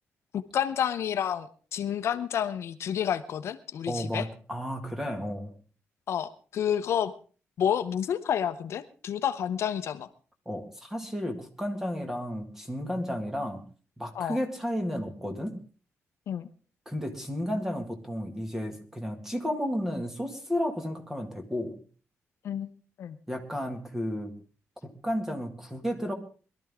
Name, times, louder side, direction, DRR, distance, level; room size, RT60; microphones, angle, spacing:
voice 1, 0.3-4.2 6.1-7.1 7.6-10.1 14.1-14.4 16.3-16.5 22.4-22.7 23.0-23.2, left 9 dB, 65° left, 11 dB, 0.8 m, -29 dB
voice 2, 3.9-5.5 10.5-13.6 14.0-15.6 16.9-21.8 23.3-24.3 24.8-26.1, equal, 5° right, 6 dB, 1.9 m, -32 dB
22.0 x 12.5 x 3.6 m, 0.38 s
wide cardioid pair, 155°, 5 cm